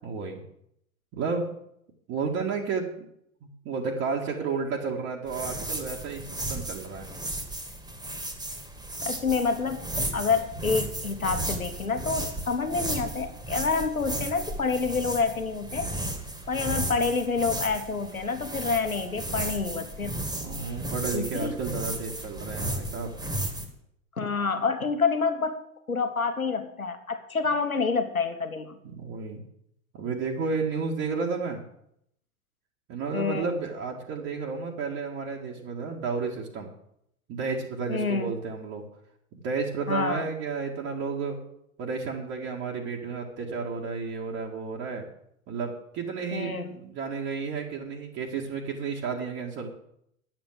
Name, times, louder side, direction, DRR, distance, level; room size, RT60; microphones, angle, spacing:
voice 1, 0.0-0.4 1.1-1.6 2.1-3.1 3.4-7.1 20.3-23.1 29.0-29.4 29.9-31.6 32.9-36.7 37.3-38.8 39.3-41.4 41.8-45.1 45.5-49.7, right 5 dB, 35° right, -2 dB, 2.0 m, -32 dB
sound 1, 5.3-23.7, right 1 dB, 10° right, 2.1 m, -34 dB
voice 2, 9.0-9.9 10.1-15.9 16.5-20.2 21.1-21.6 24.2-25.6 25.9-28.8 33.1-33.5 37.9-38.3 39.9-40.2 46.3-46.8, left 4 dB, 90° left, 8 dB, 1.3 m, -28 dB
10.0 x 7.5 x 7.5 m, 0.73 s
figure-of-eight pair, 95°, 41 cm